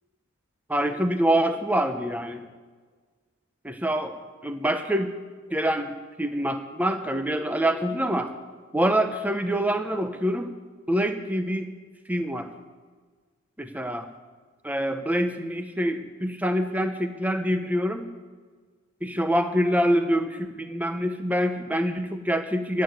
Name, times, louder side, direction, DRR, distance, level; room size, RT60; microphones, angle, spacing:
voice 1, 0.7-2.5 3.6-4.2 4.4-5.1 5.5-8.3 8.7-10.5 10.9-11.7 12.1-12.5 13.6-14.1 14.6-18.1 19.0-22.8, equal, 5° right, 8 dB, 0.8 m, -25 dB
13.0 x 8.7 x 9.5 m, 1.5 s
head